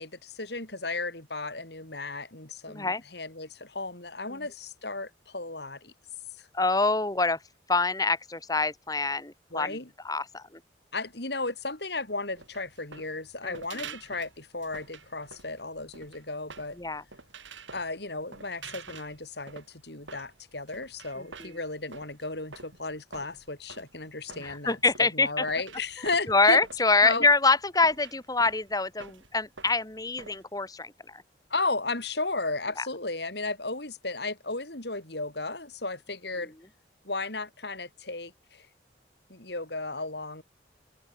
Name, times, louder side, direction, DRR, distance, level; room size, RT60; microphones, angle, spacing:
voice 1, 0.0-5.9 6.4-6.5 9.5-9.9 10.9-16.8 17.7-26.6 27.0-27.2 31.5-36.5 37.0-38.7 39.3-40.4, left 3 dB, 60° left, 5.0 m, -34 dB
voice 2, 2.7-3.0 6.5-7.4 7.7-9.8 10.0-10.6 13.4-13.9 16.8-17.0 21.2-21.6 24.4-25.4 26.3-31.2 32.8-32.9, left 3 dB, 20° left, 1.6 m, -26 dB
sound 1, 12.3-30.4, right 5 dB, 85° right, 6.9 m, -48 dB
open air
head